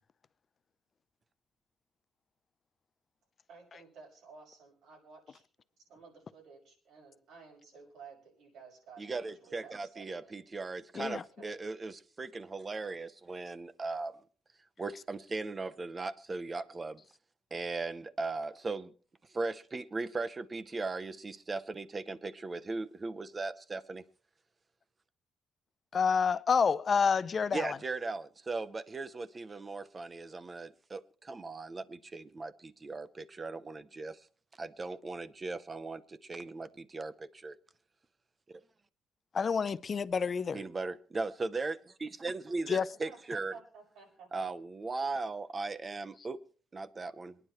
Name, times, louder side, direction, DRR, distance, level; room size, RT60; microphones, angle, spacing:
voice 1, 3.5-5.4 5.9-10.3 11.4-11.6 43.0-44.5, right 5 dB, 70° right, 6.5 m, -54 dB
voice 2, 9.0-14.2 14.8-17.0 17.5-18.9 19.3-24.0 27.5-34.2 34.6-37.6 38.5-38.6 40.5-43.5 44.3-46.4 46.7-47.4, right 3 dB, 20° right, 0.7 m, -38 dB
voice 3, 25.9-27.8 39.3-40.6 42.7-42.8, left 6 dB, 30° left, 0.5 m, -28 dB
27.0 x 9.9 x 3.1 m
cardioid pair, 170°, 0 cm